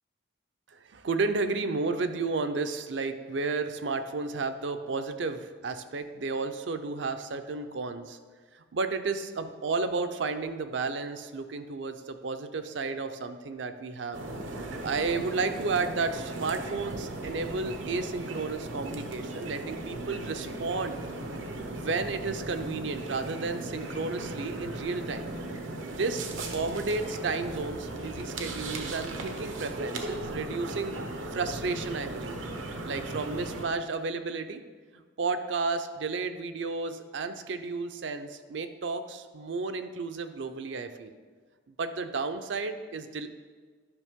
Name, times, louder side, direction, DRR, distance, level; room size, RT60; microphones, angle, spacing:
voice 1, 0.7-8.2 8.5-14.2 14.6-21.0 21.7-25.3 25.7-31.0 31.3-32.4 32.8-34.6 34.9-41.1 41.8-43.3, right 4 dB, 70° right, 8 dB, 0.6 m, -32 dB
sound 1, 14.1-33.6, right 2 dB, 90° right, 0.9 m, -37 dB
11.0 x 5.7 x 3.6 m, 1.5 s
head